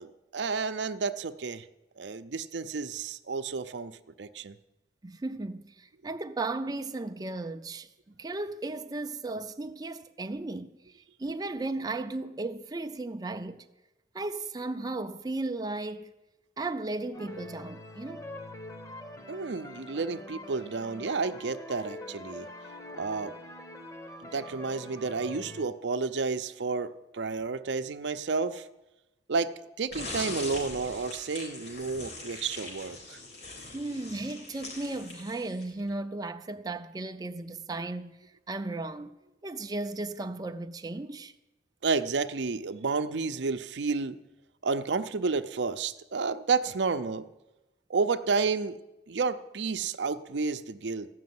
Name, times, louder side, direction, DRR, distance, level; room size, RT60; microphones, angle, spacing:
voice 1, 0.0-1.7 2.0-4.6 19.3-22.5 22.9-23.3 24.2-28.7 29.3-33.2 41.8-44.2 44.6-47.3 47.9-48.8 49.1-51.1, right 4 dB, 75° right, 0.6 m, -31 dB
voice 2, 5.0-7.9 8.2-10.9 11.2-13.7 14.1-16.1 16.6-18.3 33.7-39.2 39.4-41.3, right 2 dB, 20° right, 0.5 m, -35 dB
sound 1, 17.1-25.7, left 1 dB, 20° left, 1.0 m, -44 dB
sound 2, 29.9-35.8, left 2 dB, 65° left, 4.1 m, -41 dB
15.0 x 6.2 x 9.4 m
head